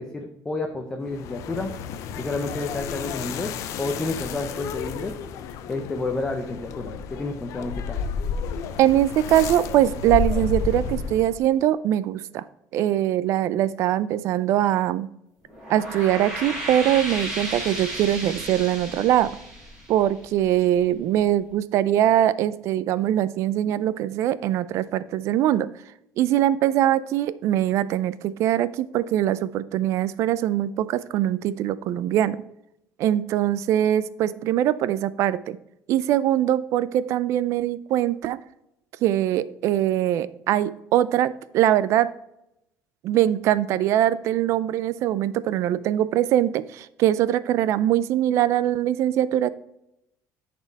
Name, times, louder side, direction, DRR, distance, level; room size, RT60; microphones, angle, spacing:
voice 1, 0.0-1.7 2.2-3.5 3.8-5.1 5.7-8.0, left 2 dB, 10° left, 3 dB, 0.6 m, -30 dB
sound 1, 1.1-11.5, left 6 dB, 60° left, 0.6 m, -31 dB
voice 2, 8.8-12.4 12.7-15.1 15.7-19.4 19.9-25.7 26.2-32.4 33.0-35.6 35.9-38.4 39.0-42.1 43.0-49.5, right 12 dB, 55° right, 16 dB, 0.4 m, -22 dB
sound 2, 15.4-20.7, right 1 dB, 10° right, 2.6 m, -34 dB
10.5 x 4.3 x 4.0 m, 0.83 s
cardioid pair, 180°, 6 cm